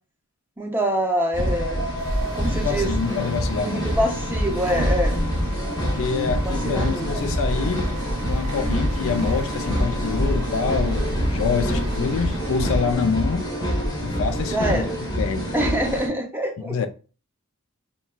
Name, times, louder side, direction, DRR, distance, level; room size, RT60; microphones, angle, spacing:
voice 1, 0.6-1.9 2.3-2.9 3.6-5.2 5.4-5.8 6.3-7.1 11.6-11.9 14.5-15.0 15.5-16.8, right 1 dB, 10° right, 0.4 m, -26 dB
sound 1, 1.3-16.1, equal, 15° left, 0.8 m, -25 dB
sound 2, 2.0-12.8, right 2 dB, 85° right, 0.5 m, -38 dB
voice 2, 2.4-3.9 5.9-7.9 8.3-13.5 14.0-14.9 15.2-15.5 16.6-16.9, left 5 dB, 60° left, 0.4 m, -26 dB
3.8 x 2.2 x 2.2 m
head